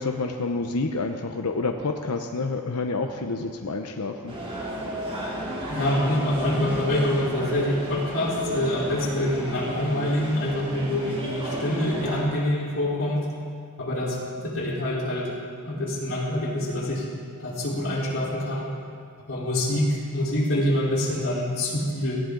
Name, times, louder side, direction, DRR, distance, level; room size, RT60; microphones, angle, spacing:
voice 1, 0.0-4.3, left 3 dB, 90° left, 4 dB, 0.8 m, -28 dB
sound 1, 4.3-12.2, right 1 dB, 25° right, 3.6 m, -33 dB
voice 2, 5.7-13.3 13.8-15.4 15.7-17.0 17.4-18.7 19.3-22.2, left 1 dB, 60° left, -6 dB, 4.2 m, -26 dB
18.0 x 15.0 x 3.9 m, 2.2 s
head